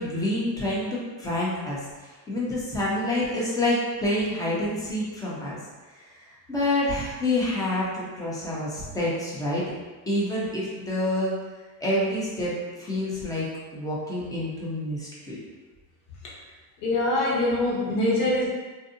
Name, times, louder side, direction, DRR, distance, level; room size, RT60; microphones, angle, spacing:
voice 1, 0.0-1.8 2.3-5.5 5.9-6.0 6.5-9.6 10.1-11.3 11.8-13.5 13.7-15.4, left 1 dB, 10° left, -6 dB, 0.5 m, -27 dB
voice 2, 16.8-18.5, left 1 dB, 65° left, -5 dB, 1.1 m, -24 dB
2.6 x 2.5 x 2.5 m, 1.3 s
supercardioid pair, 135°, 45 cm